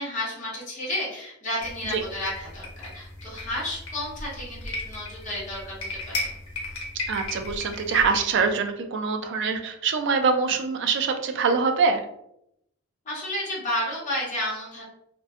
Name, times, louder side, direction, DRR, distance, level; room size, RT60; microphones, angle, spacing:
voice 1, 0.0-6.1 13.0-14.8, left 1 dB, 35° left, -6 dB, 0.9 m, -32 dB
sound 1, 1.6-8.2, left 2 dB, 90° left, 0.7 m, -36 dB
voice 2, 7.1-12.0, right 5 dB, 55° right, 6 dB, 0.3 m, -24 dB
2.5 x 2.2 x 2.3 m, 0.77 s
head